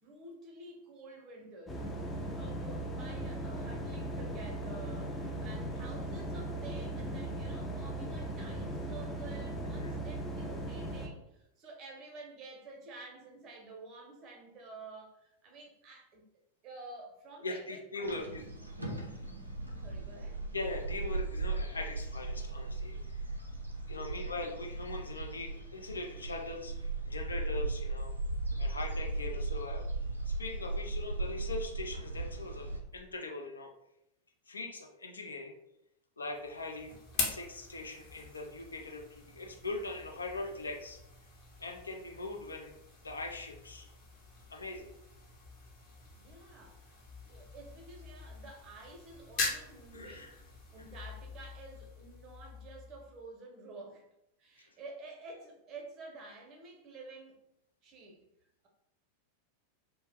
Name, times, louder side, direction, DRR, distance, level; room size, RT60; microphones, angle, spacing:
voice 1, 0.0-1.8 2.1-16.2 16.6-18.4 19.7-20.4 23.9-24.5 46.1-47.0 47.3-50.3 50.7-54.1 54.4-57.4 57.8-58.2, right 3 dB, 35° right, 1 dB, 0.7 m, -50 dB
sound 1, 1.7-11.1, right 1 dB, 10° left, 0.4 m, -38 dB
voice 2, 17.4-18.4 18.8-19.1 20.5-23.2 23.9-26.8 27.1-28.1 28.6-29.9 30.3-33.7 34.5-35.6 36.2-41.0 41.6-42.7 43.0-43.9 44.5-44.9 49.9-50.3 50.8-51.0, left 2 dB, 75° left, 2 dB, 0.4 m, -41 dB
sound 2, 18.0-32.8, right 2 dB, 85° right, 0.4 m, -37 dB
sound 3, 36.3-53.3, left 3 dB, 40° left, 0.7 m, -43 dB
2.3 x 2.0 x 3.4 m, 0.82 s
figure-of-eight pair, 90°, 0 cm